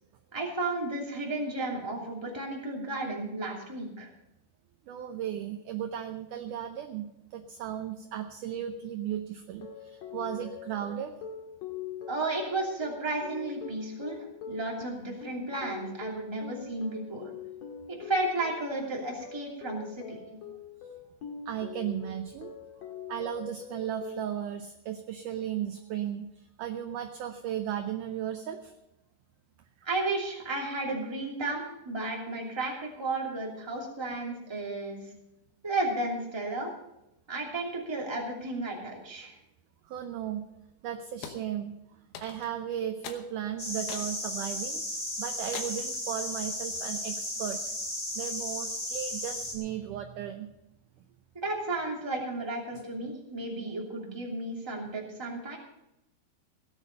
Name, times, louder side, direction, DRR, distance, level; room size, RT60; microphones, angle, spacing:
voice 1, 0.3-4.1 12.1-14.2 14.5-17.3 17.9-20.4 29.8-35.1 35.6-36.7 37.3-39.4 51.4-55.6, right 2 dB, 10° right, -1 dB, 2.0 m, -33 dB
voice 2, 4.9-11.1 21.5-22.5 23.1-28.7 39.8-40.5 40.8-41.8 42.2-47.6 48.2-50.5, right 10 dB, 75° right, 7 dB, 1.9 m, -35 dB
sound 1, 9.5-24.3, left 6 dB, 50° left, 2.4 m, -43 dB
sound 2, 41.2-41.4 42.2-42.6 43.0-43.3 43.9-44.2 44.7-44.8 45.5-45.9, left 8 dB, 80° left, 3.0 m, -42 dB
sound 3, 43.6-49.6, left 1 dB, 20° left, 3.2 m, -35 dB
17.0 x 10.0 x 5.4 m, 0.90 s
omnidirectional pair, 4.5 m